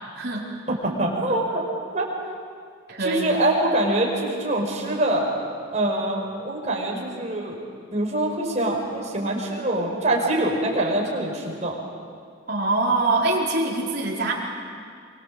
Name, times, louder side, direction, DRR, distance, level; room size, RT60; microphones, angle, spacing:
voice 1, 0.7-1.7 1.9-2.1 3.0-5.3 5.7-7.6 7.9-11.8, right 1 dB, 35° right, -2 dB, 5.1 m, -24 dB
voice 2, 2.9-3.2 12.5-14.3, right 2 dB, 50° right, -3 dB, 4.6 m, -23 dB
26.0 x 24.0 x 7.8 m, 2.2 s
head